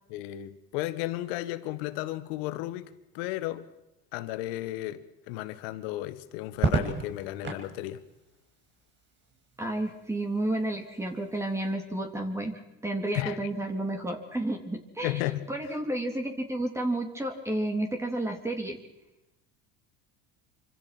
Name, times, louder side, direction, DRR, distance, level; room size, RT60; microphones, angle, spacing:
voice 1, 0.1-3.7 4.1-8.0 13.1-13.4 15.0-15.5, left 15 dB, 85° left, 1.8 m, -34 dB
Crackle, 6.5-7.7 9.3-9.8, right 5 dB, 40° right, 5.7 m, -30 dB
voice 2, 9.6-15.2 15.5-18.8, right 1 dB, 10° right, 3.6 m, -31 dB
27.0 x 25.5 x 6.2 m
supercardioid pair, 105°, 29 cm